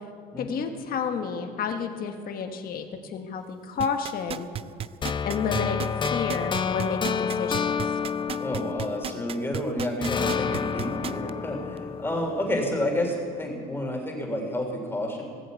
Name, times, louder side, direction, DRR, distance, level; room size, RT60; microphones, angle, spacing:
voice 1, 0.4-4.5 5.2-8.0, left 6 dB, 60° left, 5 dB, 1.5 m, -31 dB
sound 1, 3.8-11.3 11.8-11.9, right 9 dB, 35° right, 0.4 m, -34 dB
sound 2, 5.0-9.6 10.0-13.1, left 6 dB, 30° left, 0.5 m, -29 dB
voice 2, 8.4-15.2, left 1 dB, 15° left, 2 dB, 3.3 m, -30 dB
18.5 x 7.9 x 8.3 m, 2.4 s
cardioid pair, 110°, 17 cm